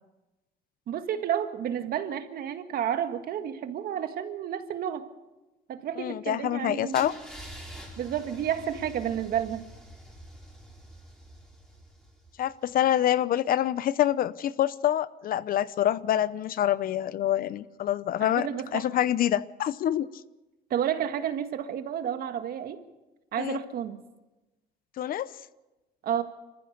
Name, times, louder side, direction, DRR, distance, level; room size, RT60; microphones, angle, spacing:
voice 1, 0.9-5.1 5.7-7.0 8.0-9.6 18.2-18.8 20.7-22.8 23.3-24.0 26.0-26.2, right 9 dB, 65° right, 8 dB, 1.8 m, -31 dB
voice 2, 6.0-7.1 12.4-20.1 23.4-23.6 25.0-25.3, left 11 dB, 60° left, 17 dB, 0.8 m, -26 dB
Car / Engine starting / Idling, 6.9-12.8, right 1 dB, 5° left, 5.4 m, -46 dB
26.5 x 15.0 x 6.7 m, 1.1 s
cardioid pair, 110°, 17 cm